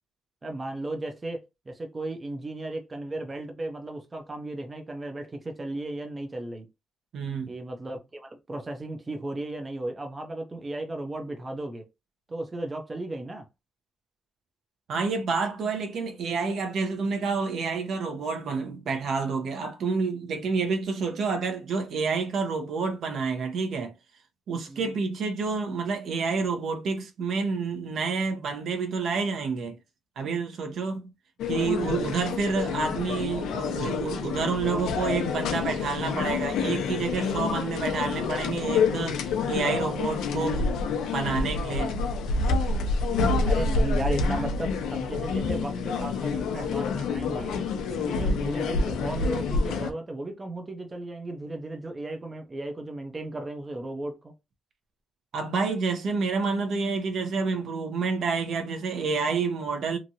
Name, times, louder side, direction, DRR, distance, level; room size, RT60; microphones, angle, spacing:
voice 1, 0.4-6.7 7.5-11.9 12.3-13.5 24.7-24.9 43.4-47.6 47.9-54.3, right 2 dB, 25° right, 0.5 m, -35 dB
voice 2, 7.1-7.5 14.9-23.9 24.5-29.7 30.2-31.1 31.5-40.7 41.1-41.9 44.3-44.4 55.3-60.0, right 4 dB, 65° right, 0.8 m, -29 dB
sound 1, 31.4-49.9, left 4 dB, 90° left, 0.6 m, -28 dB
2.9 x 2.5 x 2.7 m
cardioid pair, 105°, 0 cm